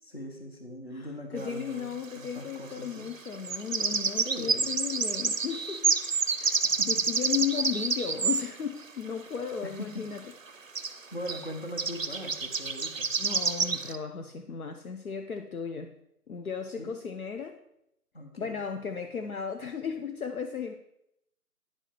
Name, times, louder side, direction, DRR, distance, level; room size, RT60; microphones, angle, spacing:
voice 1, 0.0-3.1 4.2-4.8 6.6-6.9 9.8-9.9 11.1-13.1 16.8-17.0 18.1-18.6, equal, 40° left, 3 dB, 1.1 m, -41 dB
voice 2, 0.9-6.0 6.4-10.2 13.2-15.9 16.3-17.6 18.4-20.7, left 7 dB, 65° left, 6 dB, 0.6 m, -35 dB
sound 1, 1.4-1.5 3.3-8.5 10.2-10.3 10.5-10.6 10.8-11.0 11.3-11.5 11.8-14.0, right 5 dB, 55° right, 0.6 m, -28 dB
10.0 x 4.4 x 4.4 m, 0.81 s
figure-of-eight pair, 175°, 46 cm